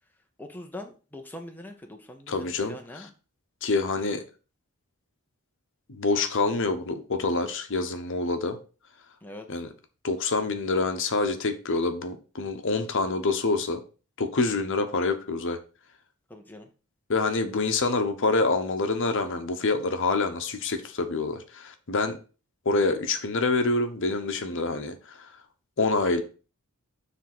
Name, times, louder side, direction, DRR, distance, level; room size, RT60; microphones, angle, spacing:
voice 1, 0.4-3.1 9.2-9.6 16.3-16.7, left 1 dB, 10° left, 0.7 m, -42 dB
voice 2, 2.3-2.8 3.6-4.2 5.9-8.6 9.5-9.7 10.0-13.8 14.2-15.6 17.1-22.2 22.6-25.2 25.8-26.2, left 3 dB, 60° left, 0.9 m, -26 dB
7.3 x 3.5 x 5.9 m
head